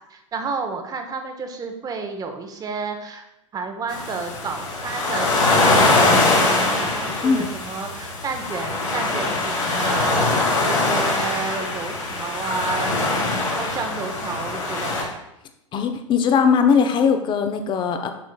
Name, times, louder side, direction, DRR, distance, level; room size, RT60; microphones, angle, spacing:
voice 1, 0.1-3.2 3.5-12.9 13.6-15.0, right 4 dB, 20° right, 6 dB, 0.9 m, -31 dB
sound 1, 3.9-15.0, left 2 dB, 75° left, 2.3 m, -22 dB
voice 2, 15.7-18.1, left 6 dB, 30° left, 7 dB, 0.8 m, -19 dB
8.4 x 6.1 x 2.3 m, 0.85 s
figure-of-eight pair, 90°, 17 cm